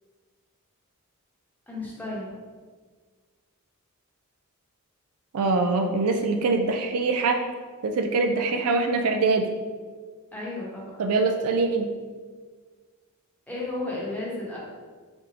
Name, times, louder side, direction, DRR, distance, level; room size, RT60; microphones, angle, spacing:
voice 1, 1.7-2.3 10.3-11.0 13.5-14.6, left 2 dB, 10° left, -6 dB, 1.0 m, -33 dB
voice 2, 5.3-7.4 7.8-9.4 11.0-11.9, right 3 dB, 80° right, 5 dB, 0.4 m, -23 dB
3.9 x 3.4 x 2.8 m, 1.5 s
head